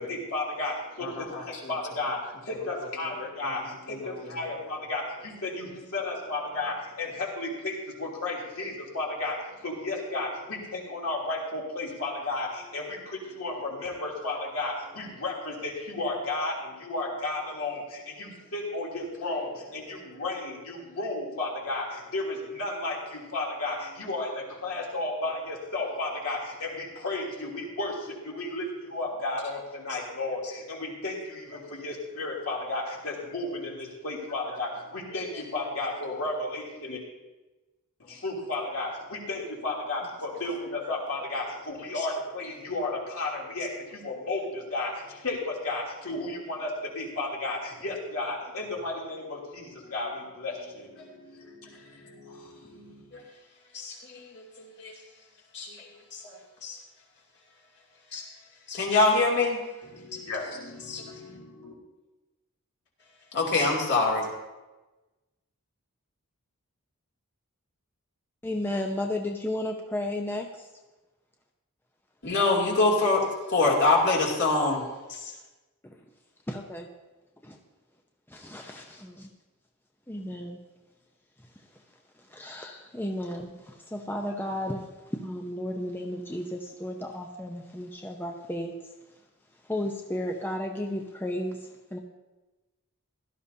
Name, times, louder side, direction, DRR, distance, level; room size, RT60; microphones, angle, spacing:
voice 1, 0.0-37.0 38.1-53.1 59.9-61.7, left 2 dB, 65° left, -3 dB, 3.1 m, -33 dB
voice 2, 1.0-1.7 3.4-3.6 3.9-4.5 29.9-30.0 35.1-35.2 41.9-42.1 53.1-53.2 53.7-55.0 55.5-56.8 58.1-58.2 58.7-59.6 60.9-61.0 63.3-64.3 72.2-75.3, left 3 dB, 50° left, -2 dB, 2.7 m, -26 dB
voice 3, 68.4-70.7 75.8-76.0 76.5-76.9 77.4-77.6 78.3-79.3 80.1-80.6 82.2-88.7 89.6-92.0, left 1 dB, 10° left, 2 dB, 0.7 m, -34 dB
16.5 x 12.5 x 2.8 m, 1.1 s
head